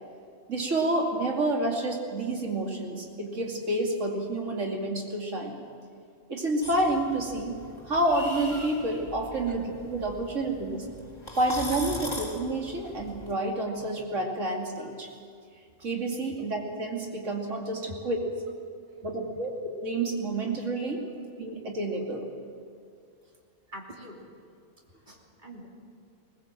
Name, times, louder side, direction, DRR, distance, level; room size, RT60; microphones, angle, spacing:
voice 1, 0.5-5.6 6.3-7.6 7.9-10.9 11.4-15.1 15.8-18.2 19.0-21.0 21.4-22.3, right 2 dB, 70° right, 0 dB, 2.9 m, -29 dB
sound 1, 6.6-13.3, left 1 dB, 20° left, 3.1 m, -41 dB
voice 2, 19.0-19.4 23.7-24.2 25.1-25.7, equal, 35° right, -1 dB, 3.2 m, -45 dB
20.0 x 20.0 x 7.6 m, 2.3 s
omnidirectional pair, 1.3 m